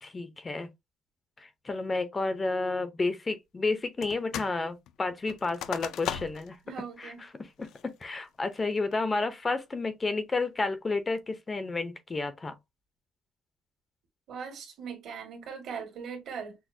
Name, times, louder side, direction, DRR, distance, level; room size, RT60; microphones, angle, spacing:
voice 1, 0.0-0.7 1.4-6.6 7.0-7.1 7.6-12.6, left 3 dB, 20° left, 0.5 m, -31 dB
sound 1, 4.0-4.6 4.9-6.6 7.0-7.1 7.6-8.0 8.5-8.9, left 10 dB, 75° left, 0.4 m, -37 dB
voice 2, 6.7-7.2 14.3-16.5, right 6 dB, 60° right, 1.7 m, -40 dB
6.0 x 2.1 x 2.6 m
cardioid pair, 175°, 0 cm